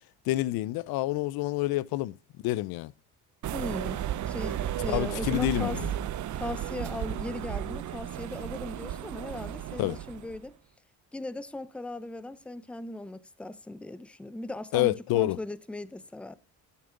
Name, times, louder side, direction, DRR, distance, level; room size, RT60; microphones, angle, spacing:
voice 1, 0.3-2.1 2.4-2.9 4.9-5.9 9.8-10.0 14.7-15.4, left 17 dB, 85° left, 0.5 m, -28 dB
sound 1, 3.4-10.4, right 11 dB, 55° right, 0.7 m, -34 dB
voice 2, 3.5-5.8 6.3-10.5 11.1-16.4, left 2 dB, 5° left, 0.5 m, -38 dB
13.0 x 6.9 x 3.7 m
cardioid pair, 110°, 35 cm